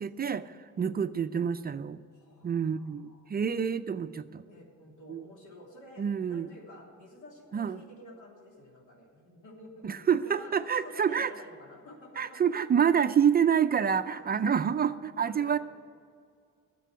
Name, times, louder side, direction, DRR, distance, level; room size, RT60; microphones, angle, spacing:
voice 1, 0.0-2.0 2.4-4.4 5.1-5.2 6.0-6.5 7.5-7.8 9.8-11.3 12.2-15.6, right 7 dB, 30° right, 11 dB, 0.4 m, -27 dB
voice 2, 2.1-3.3 4.4-12.4 14.1-14.4 14.8-14.9 15.2-15.6, left 1 dB, 80° left, -1 dB, 3.0 m, -51 dB
10.0 x 7.6 x 9.4 m, 2.2 s
cardioid pair, 90°, 30 cm